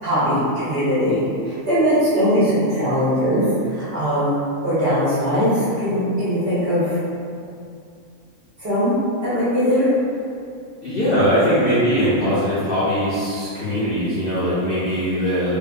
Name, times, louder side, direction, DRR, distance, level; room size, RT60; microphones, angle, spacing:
voice 1, 0.0-1.2 1.4-4.4 4.6-7.0 8.6-8.9 9.2-9.9, equal, 55° right, -10 dB, 0.7 m, -20 dB
voice 2, 10.8-15.6, equal, 70° left, -11 dB, 0.5 m, -20 dB
2.7 x 2.2 x 2.4 m, 2.4 s
omnidirectional pair, 1.5 m